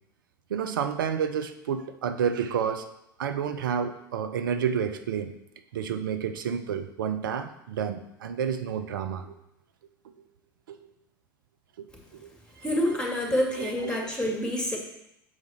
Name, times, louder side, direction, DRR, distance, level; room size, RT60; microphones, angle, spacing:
voice 1, 0.5-2.9 3.2-5.3 5.7-9.4 10.2-10.3 10.7-10.9 11.8-11.9 12.2-12.3 12.6-13.0 13.3-14.1, right 7 dB, 75° right, 9 dB, 0.6 m, -30 dB
voice 2, 12.6-14.8, left 1 dB, 10° left, 0 dB, 2.0 m, -27 dB
6.4 x 4.8 x 4.2 m, 0.82 s
hypercardioid pair, 75°, 11 cm